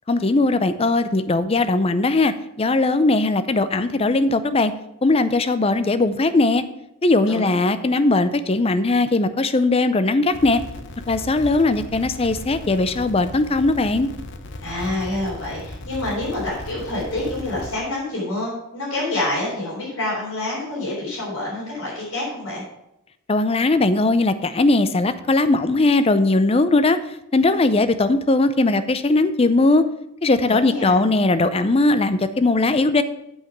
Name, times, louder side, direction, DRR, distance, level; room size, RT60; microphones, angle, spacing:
voice 1, 0.1-4.7 5.0-6.6 7.0-10.6 11.1-14.1 23.3-27.0 27.3-29.8 30.2-33.0, left 2 dB, 25° left, 12 dB, 0.5 m, -19 dB
sound 1, 10.3-17.8, left 1 dB, 55° left, 0.8 m, -36 dB
voice 2, 14.6-22.6 30.5-31.0, left 2 dB, 90° left, -9 dB, 4.0 m, -27 dB
8.1 x 5.9 x 6.0 m, 0.85 s
head